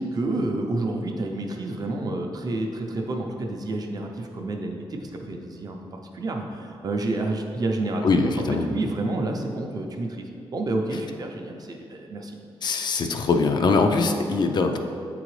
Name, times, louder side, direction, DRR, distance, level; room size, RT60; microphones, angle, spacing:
voice 1, 0.0-8.3 8.7-10.3 10.5-12.3 12.6-12.7, right 2 dB, 45° right, 2 dB, 0.6 m, -29 dB
voice 2, 8.0-8.6 12.6-14.8, left 4 dB, 50° left, 5 dB, 0.4 m, -22 dB
8.2 x 3.8 x 3.1 m, 2.4 s
wide cardioid pair, 160°, 9 cm